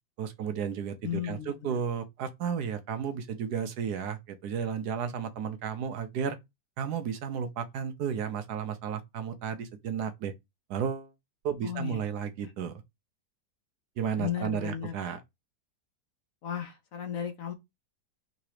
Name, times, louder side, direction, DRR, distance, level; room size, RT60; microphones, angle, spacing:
voice 1, 0.2-6.4 6.8-10.3 10.7-11.1 11.4-12.8 14.0-15.2, right 7 dB, 70° right, 1.2 m, -33 dB
voice 2, 1.0-1.8 11.6-12.0 14.2-14.9 16.4-17.5, left 9 dB, 60° left, 1.0 m, -35 dB
3.9 x 2.9 x 4.7 m
omnidirectional pair, 1.8 m